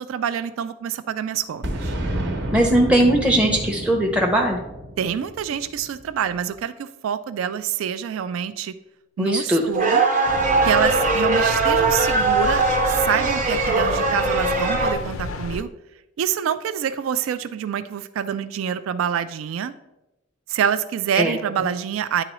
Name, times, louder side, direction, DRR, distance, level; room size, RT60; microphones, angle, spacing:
voice 1, 0.1-1.9 5.0-8.7 9.2-10.1 10.6-15.7 16.2-19.7 20.5-22.2, right 8 dB, 80° right, 13 dB, 0.3 m, -26 dB
Boom, 1.6-6.3, right 1 dB, 65° right, 1.0 m, -30 dB
voice 2, 2.5-4.6 9.2-9.6 21.2-21.3, right 1 dB, 5° right, -1 dB, 0.5 m, -19 dB
sound 1, 9.7-14.9, right 3 dB, 40° right, 0.8 m, -20 dB
sound 2, 10.2-15.6, left 3 dB, 80° left, 0.4 m, -32 dB
9.8 x 3.8 x 3.0 m, 0.96 s
head